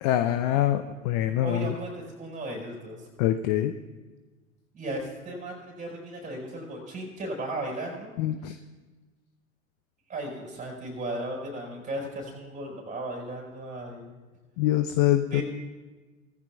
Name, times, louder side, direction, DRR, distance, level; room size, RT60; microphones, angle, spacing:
voice 1, 0.0-1.7 3.2-3.7 8.2-8.6 14.6-15.4, left 13 dB, 30° left, 10 dB, 0.4 m, -24 dB
voice 2, 1.4-3.1 4.7-8.1 10.1-14.1 15.3-15.4, right 1 dB, 20° right, -1 dB, 4.5 m, -36 dB
18.0 x 14.5 x 2.3 m, 1.3 s
figure-of-eight pair, 90°, 42 cm